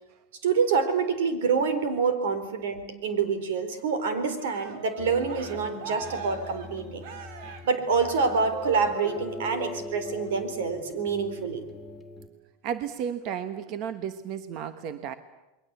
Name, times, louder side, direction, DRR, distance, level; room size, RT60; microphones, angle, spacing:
voice 1, 0.4-7.0 7.6-11.6, right 5 dB, 85° right, 10 dB, 4.1 m, -27 dB
Cheering, 4.3-9.6 10.0-10.4, right 6 dB, 65° right, 3.1 m, -42 dB
sound 1, 5.0-12.3, left 2 dB, 5° left, 2.5 m, -41 dB
voice 2, 12.6-15.1, right 8 dB, 45° right, 11 dB, 1.2 m, -33 dB
28.5 x 22.0 x 8.3 m, 1.0 s
supercardioid pair, 145°, 0 cm